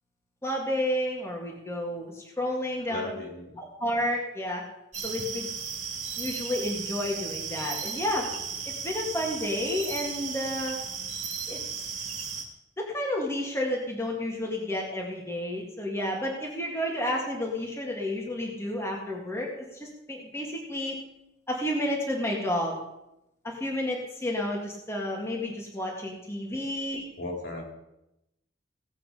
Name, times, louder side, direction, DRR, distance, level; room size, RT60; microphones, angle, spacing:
voice 1, 0.4-3.1 3.6-4.6 5.0-5.5 6.2-8.3 8.8-10.8 11.5-11.6 12.8-21.0 21.5-22.8 23.4-27.1, left 1 dB, 15° left, -1 dB, 1.9 m, -31 dB
voice 2, 2.9-3.6 26.5-26.7 27.2-27.6, left 2 dB, 60° left, 0 dB, 3.1 m, -37 dB
sound 1, 4.9-12.4, right 6 dB, 35° right, 2.1 m, -35 dB
17.5 x 7.7 x 5.0 m, 0.90 s
head